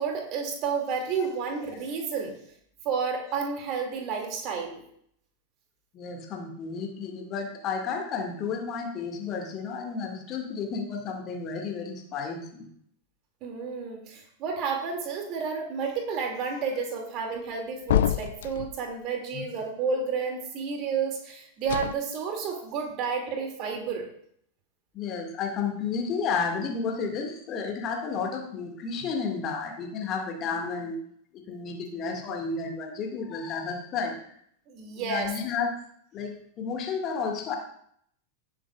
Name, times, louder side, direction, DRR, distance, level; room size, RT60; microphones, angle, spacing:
voice 1, 0.0-2.4 2.8-4.8 13.4-24.1 34.7-35.3, right 5 dB, 40° right, 2 dB, 2.5 m, -31 dB
voice 2, 5.9-12.7 19.3-19.4 24.9-31.0 31.3-34.2 35.0-35.7 36.1-37.5, left 5 dB, 35° left, 2 dB, 2.1 m, -32 dB
sound 1, 17.9-18.8 21.6-21.9, left 11 dB, 60° left, 0.3 m, -26 dB
17.5 x 7.3 x 2.5 m, 0.66 s
figure-of-eight pair, 90°, 0 cm